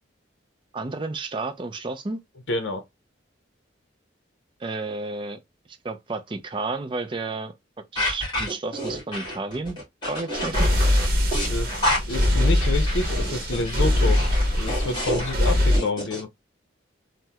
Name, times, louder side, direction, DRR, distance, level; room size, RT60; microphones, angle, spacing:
voice 1, 0.7-2.2 4.6-5.4 5.7-7.5 7.9-9.8 10.1-10.7, right 3 dB, 25° right, 0.4 m, -31 dB
voice 2, 2.5-2.8 11.5-14.2 14.5-16.3, left 2 dB, 70° left, 0.6 m, -28 dB
sound 1, 8.0-16.2, equal, 20° left, 1.8 m, -29 dB
sound 2, 10.4-15.8, left 1 dB, 50° right, 0.9 m, -22 dB
3.4 x 2.1 x 2.7 m
head